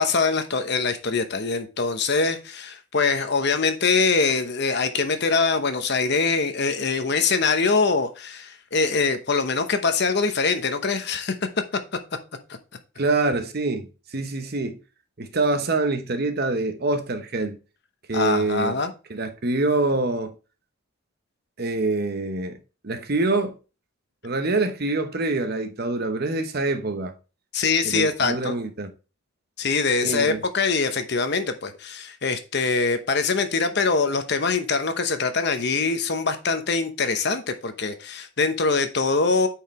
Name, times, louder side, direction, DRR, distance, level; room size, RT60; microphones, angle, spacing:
voice 1, 0.0-11.3 18.1-18.9 27.5-28.5 29.6-39.5, left 4 dB, 50° left, 0.9 m, -23 dB
voice 2, 13.0-14.8 15.2-17.6 18.1-18.8 19.1-20.3 21.6-22.6 22.8-23.5 24.2-27.1 27.8-28.9 30.0-30.4, right 2 dB, 45° right, 0.9 m, -25 dB
8.8 x 4.7 x 3.1 m
head